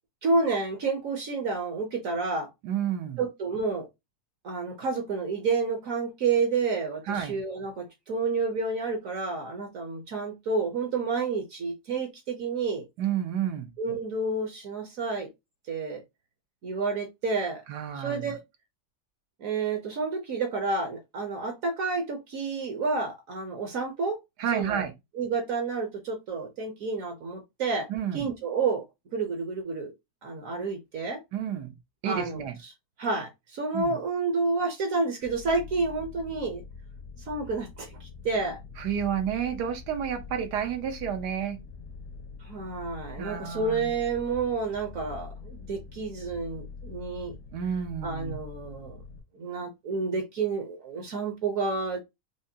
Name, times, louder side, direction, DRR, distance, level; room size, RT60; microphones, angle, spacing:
voice 1, 0.2-2.5 3.2-3.9 4.4-12.8 13.8-15.3 15.7-16.0 16.6-17.6 17.9-18.4 19.4-24.2 24.5-24.8 25.1-28.8 29.1-29.9 30.2-31.2 32.0-32.7 33.0-36.6 37.3-38.6 42.4-47.4 48.0-49.0 49.3-52.0, right 4 dB, 60° right, 1.1 m, -30 dB
voice 2, 2.6-3.2 7.1-7.3 13.0-13.7 17.7-18.3 24.4-24.9 27.9-28.3 31.3-31.7 32.0-32.6 33.7-34.0 38.8-41.6 43.2-43.9 47.5-48.4, right 9 dB, 85° right, 1.4 m, -30 dB
sound 1, 35.2-49.2, left 5 dB, 75° left, 1.4 m, -44 dB
5.0 x 2.1 x 2.7 m
omnidirectional pair, 1.7 m